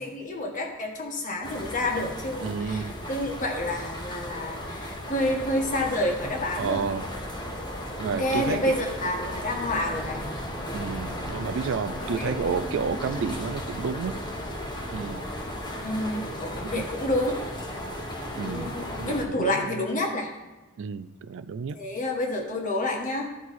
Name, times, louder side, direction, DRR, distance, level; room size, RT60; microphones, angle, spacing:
voice 1, 0.0-6.9 8.1-10.2 12.1-12.4 15.8-17.4 18.4-20.3 21.7-23.3, left 1 dB, 40° left, 1 dB, 1.5 m, -29 dB
sound 1, 1.4-19.2, equal, 20° left, 1.2 m, -35 dB
voice 2, 2.4-2.9 6.6-7.1 8.0-8.8 10.7-14.2 14.9-15.2 16.6-16.8 18.4-19.7 20.8-21.8, right 5 dB, 65° right, 13 dB, 0.4 m, -31 dB
13.5 x 4.6 x 4.2 m, 1.2 s
head